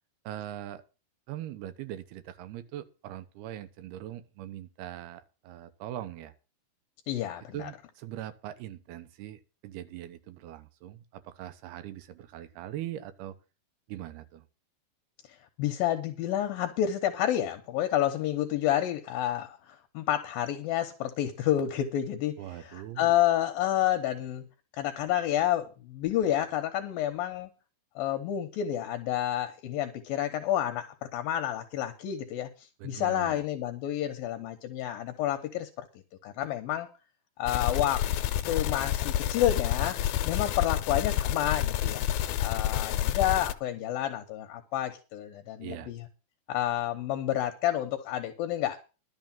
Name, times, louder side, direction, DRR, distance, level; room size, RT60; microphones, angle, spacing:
voice 1, 0.2-0.8 1.3-6.3 7.5-13.4 13.9-14.4 22.4-23.2 32.8-33.4 45.6-45.9, right 12 dB, 85° right, 10 dB, 3.0 m, -41 dB
voice 2, 7.1-7.7 15.6-24.4 24.8-27.5 28.0-35.9 36.2-36.9 37.4-38.0 38.5-40.0 40.3-46.0 46.5-48.8, left 12 dB, 75° left, 6 dB, 2.7 m, -29 dB
sound 1, 37.5-43.5, left 12 dB, 90° left, 2.8 m, -29 dB
12.0 x 6.5 x 7.4 m, 0.32 s
omnidirectional pair, 4.5 m